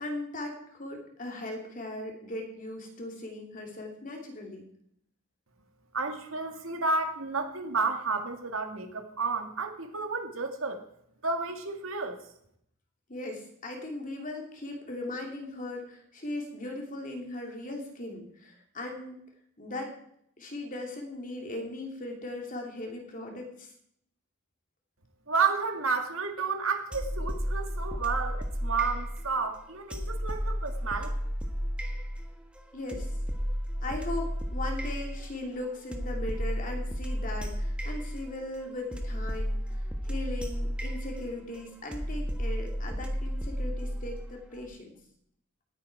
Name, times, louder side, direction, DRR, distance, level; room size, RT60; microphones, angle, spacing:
voice 1, 0.0-4.6 13.1-19.2 19.6-20.0 20.4-23.7 32.7-33.1 33.8-45.0, left 2 dB, 35° left, 1 dB, 2.8 m, -38 dB
voice 2, 5.9-10.8 11.2-12.2 25.3-31.1, right 4 dB, 65° right, 5 dB, 2.1 m, -31 dB
sound 1, 26.9-44.7, equal, 5° right, 1.1 m, -33 dB
18.5 x 8.8 x 4.7 m, 0.70 s
head